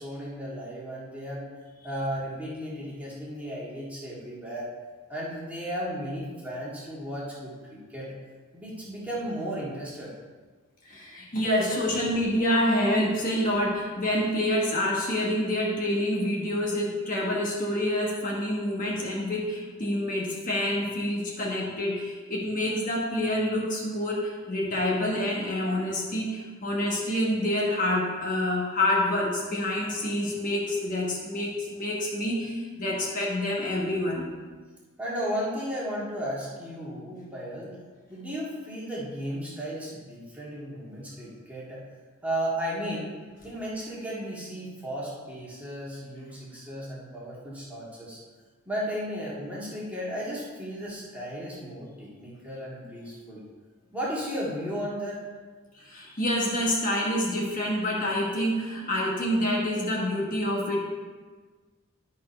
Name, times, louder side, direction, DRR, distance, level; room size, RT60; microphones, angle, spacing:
voice 1, 0.0-1.5 1.8-4.7 5.1-8.1 8.5-10.1 35.0-37.8 38.1-41.8 42.2-43.2 43.4-48.2 48.7-53.4 53.9-55.3, equal, 5° right, -7 dB, 1.9 m, -34 dB
voice 2, 10.9-34.3 55.7-60.8, left 1 dB, 40° left, -3 dB, 1.3 m, -27 dB
11.0 x 4.3 x 5.3 m, 1.4 s
head